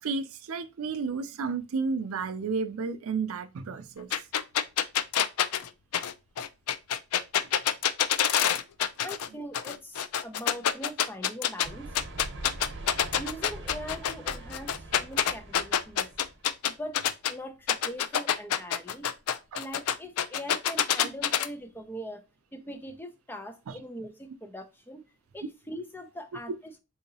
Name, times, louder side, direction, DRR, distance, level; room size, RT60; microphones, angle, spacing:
voice 1, 0.0-4.2 7.4-7.6 19.5-19.6 23.7-23.8, right 4 dB, 75° right, 0.4 m, -32 dB
sound 1, 4.1-9.3 9.5-11.7 11.9-17.3 17.7-21.5, left 9 dB, 90° left, 0.4 m, -26 dB
voice 2, 9.0-12.0 13.2-16.1 16.6-17.0 17.2-19.1 19.6-22.2 22.5-25.0 25.3-26.7, equal, 10° left, 0.5 m, -41 dB
sound 2, 11.6-16.5, right 2 dB, 55° right, 0.9 m, -43 dB
3.7 x 2.8 x 2.7 m
head